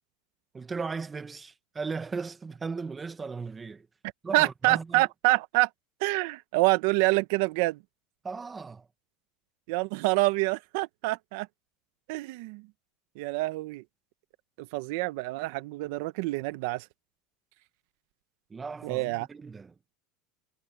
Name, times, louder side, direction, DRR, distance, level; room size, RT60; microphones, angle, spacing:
voice 1, 0.5-3.9 4.2-5.0 8.2-8.9 18.5-19.7, right 4 dB, 20° right, 1.6 m, -37 dB
voice 2, 4.3-5.7 6.0-7.8 9.7-11.5 12.1-12.7 13.2-13.8 14.6-16.9 18.8-19.3, right 22 dB, 70° right, 1.0 m, -27 dB
supercardioid pair, 120°, 0 cm